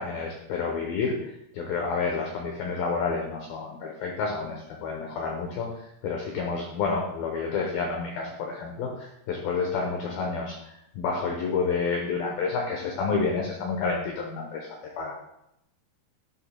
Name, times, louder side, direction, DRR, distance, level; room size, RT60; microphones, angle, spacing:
voice 1, 0.0-15.1, left 4 dB, 85° left, 0 dB, 2.1 m, -29 dB
10.5 x 7.0 x 2.2 m, 0.81 s
omnidirectional pair, 5.5 m